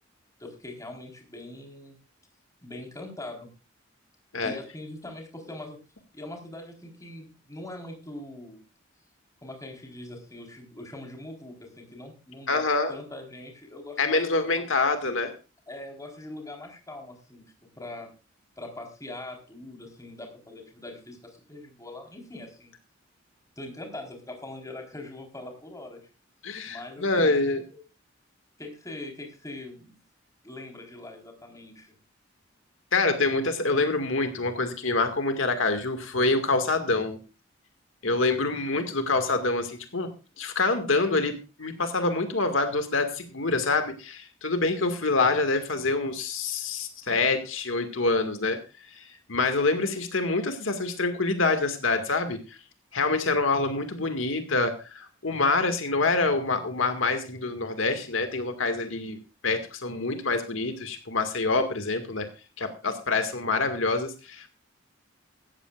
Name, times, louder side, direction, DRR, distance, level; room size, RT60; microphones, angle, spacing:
voice 1, 0.4-2.0 2.6-3.5 4.4-5.8 6.1-8.6 9.4-12.6 12.9-14.7 15.7-17.4 17.8-18.1 18.6-22.7 23.6-26.0 26.7-27.3 27.7-27.8 28.6-29.9 30.4-31.9, left 2 dB, 15° left, 2 dB, 4.1 m, -42 dB
voice 2, 12.5-12.9 14.0-15.3 26.4-27.6 32.9-37.2 38.0-40.1 40.4-48.6 48.9-52.6 52.9-59.2 59.4-62.3 62.6-64.5, left 3 dB, 85° left, 7 dB, 2.0 m, -26 dB
17.0 x 14.0 x 2.5 m, 0.32 s
head